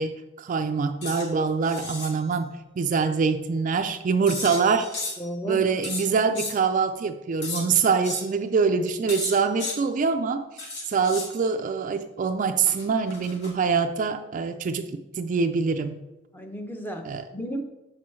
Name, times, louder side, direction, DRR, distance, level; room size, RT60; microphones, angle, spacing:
voice 1, 0.0-4.9 5.4-16.0 17.0-17.2, right 5 dB, 40° right, 7 dB, 0.3 m, -25 dB
sound 1, 1.0-1.3 1.6-2.1 4.3-5.3 5.8-6.5 7.4-7.6 8.0-8.3 9.1-9.8 10.6-11.3 12.7-13.7, left 3 dB, 60° left, 1.5 m, -34 dB
voice 2, 5.2-5.7 16.3-17.6, equal, 10° left, 5 dB, 0.6 m, -34 dB
6.2 x 6.0 x 3.1 m, 1.0 s
head